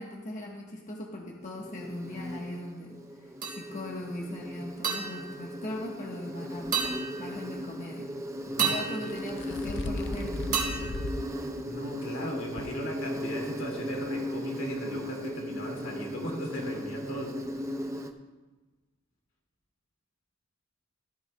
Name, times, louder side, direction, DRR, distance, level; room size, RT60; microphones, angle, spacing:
voice 1, 0.0-3.0 3.5-6.8 7.2-8.1 8.6-10.6, left 1 dB, 35° left, -2 dB, 1.2 m, -39 dB
Insect, 1.4-18.1, equal, 15° right, 0.5 m, -37 dB
sound 1, 3.4-4.0 4.8-6.3 6.7-7.7 8.6-10.1 10.5-11.9, right 6 dB, 40° right, 1.8 m, -34 dB
sound 2, 6.7-6.9 8.9-11.3 11.7-11.8 12.6-12.7, left 2 dB, 60° left, 0.5 m, -36 dB
voice 2, 8.5-8.8 11.6-17.7, equal, 80° left, -1 dB, 2.3 m, -38 dB
13.5 x 13.0 x 2.2 m, 1.2 s
head